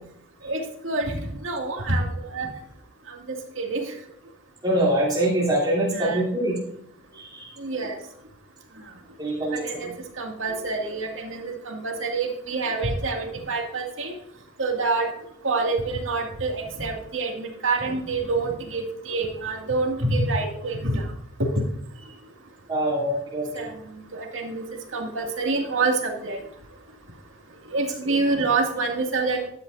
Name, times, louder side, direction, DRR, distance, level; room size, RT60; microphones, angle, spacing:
voice 1, 0.4-2.5 3.1-3.9 5.9-6.2 7.6-8.0 9.5-9.9 10.2-14.1 14.6-15.1 15.4-21.1 23.5-23.7 24.1-24.6 24.9-26.4 27.7-29.5, right 3 dB, 75° right, 2 dB, 2.1 m, -27 dB
voice 2, 4.6-6.6 7.1-7.5 9.2-9.9 22.7-23.7 28.1-28.2, right 1 dB, 20° right, -6 dB, 3.2 m, -24 dB
12.5 x 9.6 x 2.6 m, 0.72 s
head